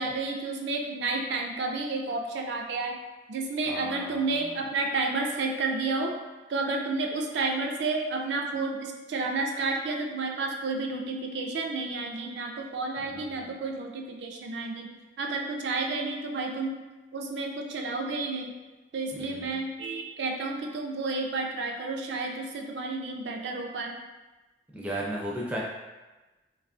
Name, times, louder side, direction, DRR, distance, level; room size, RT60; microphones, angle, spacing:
voice 1, 0.0-3.0 3.3-6.2 6.5-14.9 15.2-16.8 17.1-18.6 18.9-24.0, right 3 dB, 80° right, 2 dB, 0.4 m, -31 dB
voice 2, 3.7-4.4 13.0-13.4 19.1-19.5 24.7-25.6, right 1 dB, 10° right, -4 dB, 0.4 m, -35 dB
3.0 x 2.3 x 2.4 m, 1.1 s
head